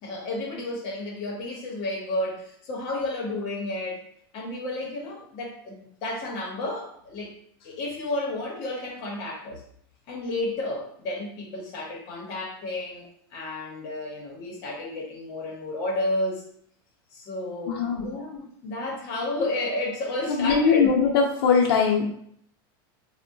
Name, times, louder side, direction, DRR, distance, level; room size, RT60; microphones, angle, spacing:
voice 1, 0.0-4.0 4.3-7.3 7.6-9.6 10.1-16.5 17.1-20.9, left 2 dB, 40° left, -1 dB, 0.8 m, -32 dB
voice 2, 17.7-18.1 20.3-22.1, left 6 dB, 80° left, 0 dB, 0.5 m, -21 dB
3.5 x 2.1 x 2.6 m, 0.66 s
supercardioid pair, 170°, 12 cm